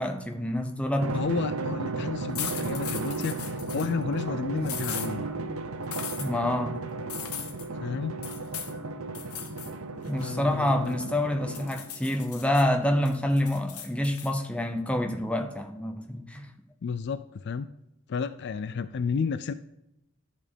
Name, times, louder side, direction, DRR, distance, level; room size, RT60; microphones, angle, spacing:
voice 1, 0.0-1.1 6.2-6.8 10.1-16.5, left 1 dB, 5° left, 5 dB, 0.7 m, -27 dB
Drum, 1.0-12.0, right 3 dB, 70° right, 0.8 m, -34 dB
voice 2, 1.1-5.3 7.8-8.2 10.2-10.9 16.8-17.7 18.1-19.5, left 5 dB, 50° left, 13 dB, 0.3 m, -32 dB
sound 1, 2.3-3.9 4.6-5.1 5.9-6.3 7.1-7.7 8.2-8.7 9.1-9.7 10.0-11.2 11.5-12.6 13.0-14.3, left 8 dB, 90° left, 1.3 m, -38 dB
11.5 x 4.4 x 5.2 m, 0.84 s
head